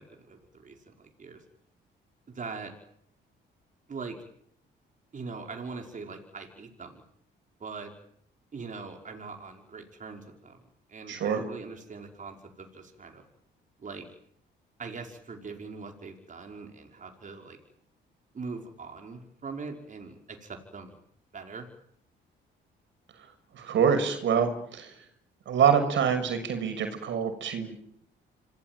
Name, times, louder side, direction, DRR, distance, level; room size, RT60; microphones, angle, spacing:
voice 1, 0.0-1.4 2.3-2.7 3.9-4.2 5.1-7.0 7.6-7.9 8.5-10.6 10.9-13.2 13.8-14.1 14.8-17.6 18.3-21.0 21.3-21.7, right 4 dB, 40° right, 3 dB, 5.3 m, -41 dB
voice 2, 11.1-11.4 23.5-24.9 25.5-27.8, right 7 dB, 70° right, 8 dB, 6.3 m, -25 dB
27.0 x 18.5 x 9.3 m, 0.69 s
cardioid pair, 90°, 20 cm